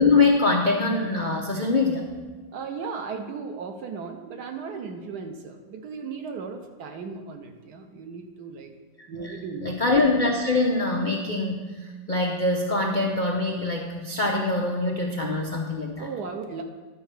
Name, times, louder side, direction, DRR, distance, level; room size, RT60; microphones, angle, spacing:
voice 1, 0.0-2.1 9.2-16.1, left 3 dB, 90° left, 1 dB, 0.4 m, -24 dB
voice 2, 2.5-8.7 9.1-9.7 16.0-16.6, right 5 dB, 65° right, 5 dB, 1.3 m, -36 dB
11.5 x 4.6 x 6.6 m, 1.3 s
omnidirectional pair, 2.1 m